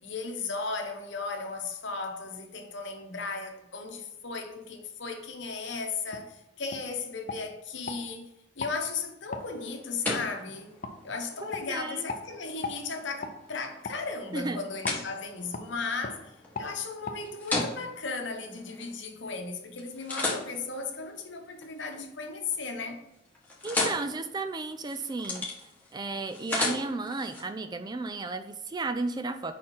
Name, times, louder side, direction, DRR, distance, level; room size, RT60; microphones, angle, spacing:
voice 1, 0.0-8.3 8.6-10.7 11.0-16.3 16.6-23.0, left 4 dB, 65° left, 0.9 m, -36 dB
sound 1, 6.1-6.3 6.7-6.8 7.3-8.0 8.6-8.8 9.3-9.5 10.1-10.2 10.8-10.9 11.5-11.7 12.1-12.2 12.6-12.8 13.2-13.3 13.8-14.0 14.8-15.0 15.5-15.7 16.0-16.2 16.5-16.7 17.0-17.2 17.5-17.7, left 3 dB, 45° left, 0.6 m, -37 dB
sound 2, 9.3-19.3 19.8-22.0 22.4-22.8 23.1-27.4, left 2 dB, 10° left, 1.2 m, -37 dB
voice 2, 11.7-12.1 14.3-14.6 23.6-25.5 25.9-29.5, right 3 dB, 20° right, 0.3 m, -33 dB
4.9 x 4.4 x 5.4 m
head